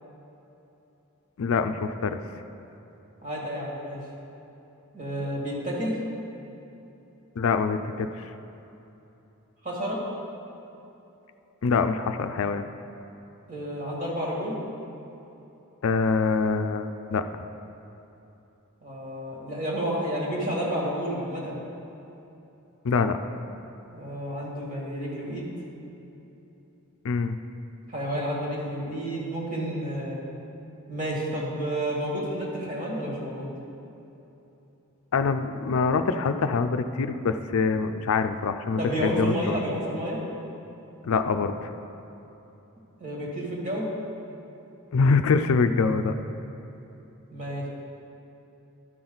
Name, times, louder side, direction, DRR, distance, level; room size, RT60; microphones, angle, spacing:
voice 1, 1.4-2.2 7.4-8.1 11.6-12.7 15.8-17.2 22.8-23.2 27.0-27.4 35.1-39.6 41.0-41.7 44.9-46.2, left 4 dB, 65° left, 8 dB, 0.4 m, -24 dB
voice 2, 3.2-4.0 4.9-6.0 9.6-10.0 13.5-14.6 18.8-21.6 23.9-25.5 27.9-30.2 30.9-33.5 38.8-40.2 43.0-43.9 47.3-47.7, equal, 40° right, -5 dB, 2.2 m, -30 dB
12.5 x 6.0 x 3.9 m, 3.0 s
head